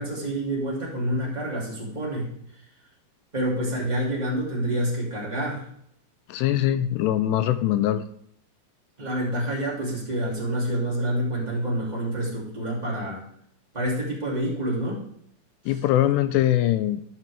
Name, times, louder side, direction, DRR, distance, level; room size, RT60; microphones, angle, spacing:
voice 1, 0.0-2.3 3.3-5.6 9.0-13.3 13.7-15.0, right 1 dB, 15° right, -5 dB, 1.4 m, -27 dB
voice 2, 6.3-8.0 15.7-17.0, left 12 dB, 85° left, 12 dB, 2.5 m, -22 dB
13.0 x 6.0 x 3.4 m, 0.69 s
omnidirectional pair, 5.1 m